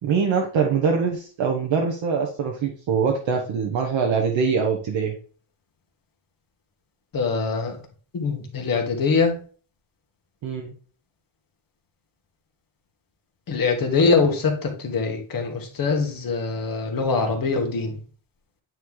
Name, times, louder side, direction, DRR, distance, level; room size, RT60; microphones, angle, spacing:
voice 1, 0.0-5.1 10.4-10.7, right 6 dB, 60° right, 1 dB, 1.1 m, -23 dB
voice 2, 7.1-7.8 8.1-9.3 13.5-18.0, left 4 dB, 40° left, 2 dB, 1.6 m, -23 dB
9.1 x 3.1 x 3.8 m, 0.41 s
cardioid pair, 145°, 50 cm